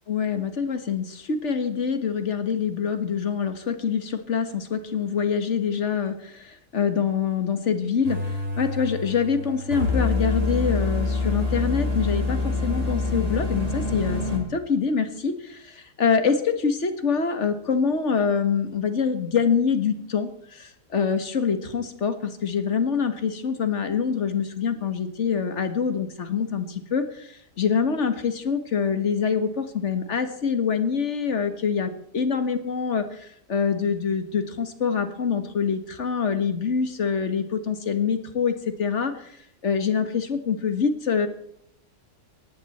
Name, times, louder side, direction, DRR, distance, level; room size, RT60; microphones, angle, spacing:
voice 1, 0.1-39.4 39.6-41.3, left 6 dB, 45° left, 8 dB, 1.8 m, -25 dB
sound 1, 8.0-14.4, left 3 dB, 50° right, 4.4 m, -26 dB
18.5 x 15.0 x 4.3 m, 0.72 s
omnidirectional pair, 1.7 m